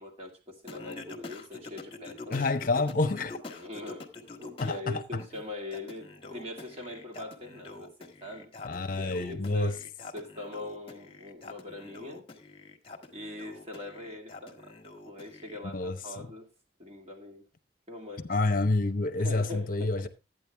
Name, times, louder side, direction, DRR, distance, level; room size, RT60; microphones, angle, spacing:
voice 1, 0.0-2.5 3.5-8.5 8.9-12.3 13.1-14.8 15.1-16.5 16.8-17.4 17.9-18.4 19.2-20.1, left 2 dB, 35° right, 2.5 m, -42 dB
Singing, 0.7-4.8 5.2-15.6, left 3 dB, 35° left, 1.5 m, -46 dB
voice 2, 2.3-3.4 4.6-5.2 8.6-9.8 15.6-16.3 18.3-20.1, left 2 dB, 50° left, 0.9 m, -28 dB
12.5 x 9.1 x 3.4 m
head